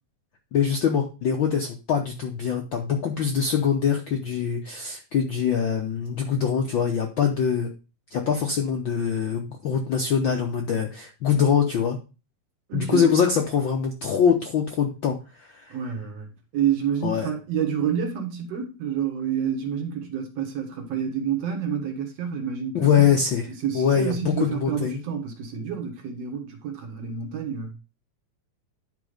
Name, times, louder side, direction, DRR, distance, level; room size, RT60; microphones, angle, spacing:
voice 1, 0.5-7.7 8.1-12.0 12.7-15.8 17.0-17.3 22.7-23.5 23.7-25.0, left 7 dB, 65° left, 1.2 m, -23 dB
voice 2, 12.7-13.1 15.7-23.1 23.6-27.7, right 8 dB, 65° right, 2.3 m, -28 dB
10.5 x 3.8 x 4.9 m
omnidirectional pair, 3.3 m